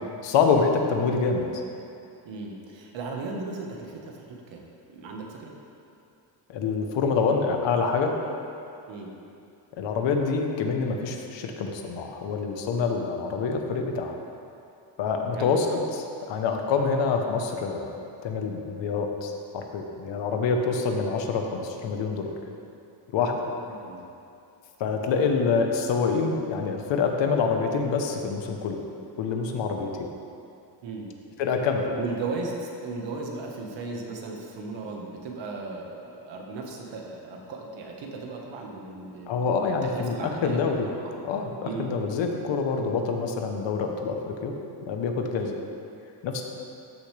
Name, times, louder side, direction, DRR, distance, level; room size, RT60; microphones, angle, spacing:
voice 1, 0.2-1.6 6.5-8.1 9.8-14.2 15.0-22.3 23.1-23.5 24.8-28.8 29.2-29.9 31.4-31.9 39.3-40.9 41.2-44.5 44.9-45.5 46.2-46.4, left 5 dB, 80° left, 3 dB, 1.1 m, -26 dB
voice 2, 2.2-5.5 8.9-9.1 15.3-15.5 23.2-23.4 23.7-24.0 27.2-27.3 30.8-31.1 31.8-39.5 39.9-41.2 41.6-41.9 45.4-45.5, right 3 dB, 80° right, 0 dB, 1.5 m, -36 dB
13.5 x 6.7 x 3.4 m, 2.6 s
cardioid pair, 160°, 44 cm